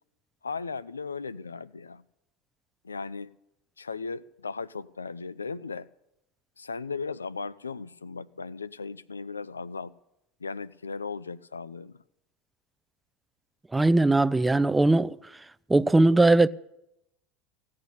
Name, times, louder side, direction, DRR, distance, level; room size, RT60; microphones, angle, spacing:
voice 1, 0.4-2.0 2.8-3.3 3.8-5.9 6.6-9.9 10.4-12.0, left 4 dB, 85° left, 0.5 m, -37 dB
voice 2, 13.7-15.2 15.7-16.5, right 2 dB, 10° right, 0.5 m, -20 dB
16.0 x 8.6 x 8.5 m
figure-of-eight pair, 75°, 0 cm